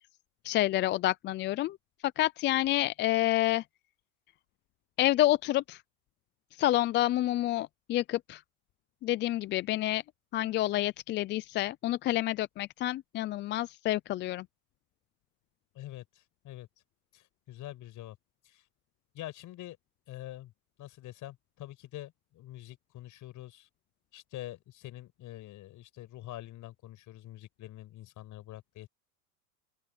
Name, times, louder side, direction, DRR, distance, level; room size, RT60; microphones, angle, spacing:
voice 1, 0.4-1.8 2.2-3.6 5.0-5.8 6.6-8.4 9.0-10.0 10.3-14.4, left 15 dB, 25° left, 0.5 m, -28 dB
voice 2, 15.7-16.7 17.1-18.2 18.4-18.6 19.1-19.8 20.1-20.5 20.8-23.7 24.1-28.9, left 14 dB, 40° left, 5.9 m, -45 dB
open air
hypercardioid pair, 110°, 45 cm